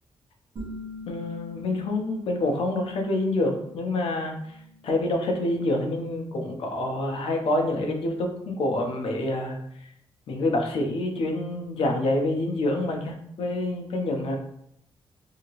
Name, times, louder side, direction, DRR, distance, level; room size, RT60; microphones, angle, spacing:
sound 1, 0.6-6.0, left 1 dB, 50° right, 0.9 m, -44 dB
voice 1, 1.1-4.6 4.8-9.6 10.3-14.4, left 2 dB, 70° left, 2 dB, 0.6 m, -27 dB
2.8 x 2.7 x 2.9 m, 0.74 s
cardioid pair, 125°, 10 cm